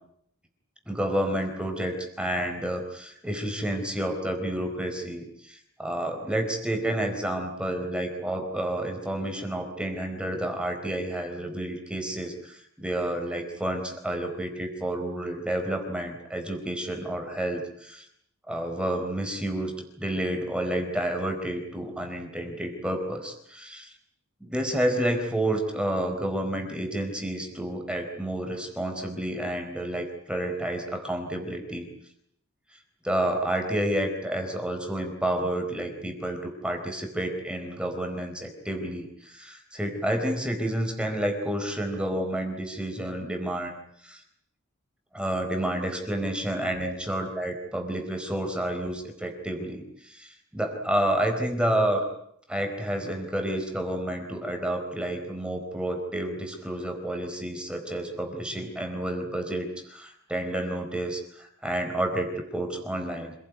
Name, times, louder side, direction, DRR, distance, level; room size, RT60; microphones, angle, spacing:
voice 1, 0.9-18.1 18.5-19.7 20.0-23.9 24.4-31.9 33.0-43.8 44.0-44.2 45.1-52.1 52.5-63.3, right 1 dB, 5° right, 4 dB, 4.2 m, -30 dB
27.0 x 18.5 x 9.5 m, 0.69 s
head